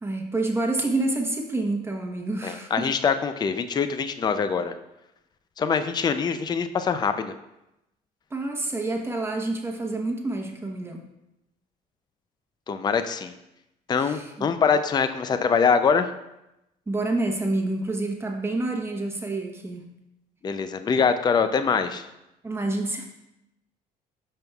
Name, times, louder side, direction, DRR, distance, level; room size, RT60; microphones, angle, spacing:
voice 1, 0.0-2.9 8.3-11.1 14.0-14.5 16.9-19.8 22.4-23.0, right 2 dB, 15° right, 2 dB, 1.0 m, -28 dB
voice 2, 2.4-4.7 5.6-7.3 12.7-13.3 13.9-16.1 20.4-22.0, left 6 dB, 25° left, 10 dB, 0.4 m, -24 dB
11.5 x 5.3 x 2.3 m, 0.89 s
cardioid pair, 110°, 17 cm